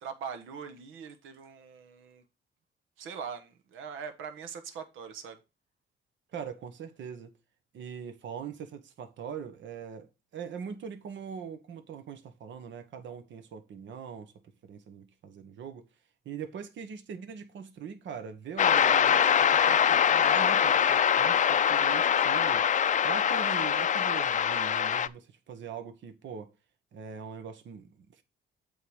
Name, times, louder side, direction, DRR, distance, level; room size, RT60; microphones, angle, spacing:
voice 1, 0.0-2.2 3.0-5.4, right 6 dB, 85° right, 1.3 m, -42 dB
voice 2, 6.3-7.3 7.7-14.3 14.6-15.9 16.2-22.6 23.0-26.5 26.9-28.2, right 7 dB, 70° right, 1.3 m, -42 dB
sound 1, 18.6-25.1, left 8 dB, 40° left, 0.5 m, -24 dB
8.1 x 3.9 x 6.4 m
cardioid pair, 90°, 20 cm